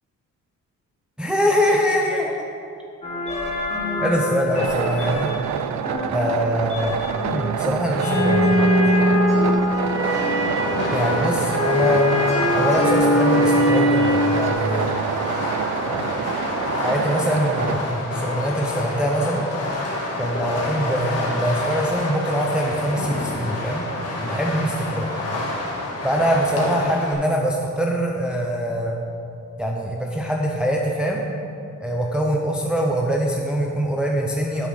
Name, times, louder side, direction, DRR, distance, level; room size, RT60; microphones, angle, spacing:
voice 1, 1.2-2.4 4.0-5.3 6.1-7.0 7.3-8.5 10.9-12.1 12.5-15.0 16.8-19.4 20.2-23.8 24.2-25.1 26.0-28.9 29.6-31.2 31.8-34.7, equal, 5° right, -1 dB, 0.7 m, -23 dB
sound 1, 3.0-14.5, left 1 dB, 20° left, 1.6 m, -22 dB
sound 2, 4.5-17.7, right 9 dB, 60° right, 0.4 m, -28 dB
Fireworks, 9.8-27.1, left 2 dB, 50° left, 1.9 m, -28 dB
9.3 x 5.6 x 6.4 m, 2.7 s
cardioid pair, 135°, 32 cm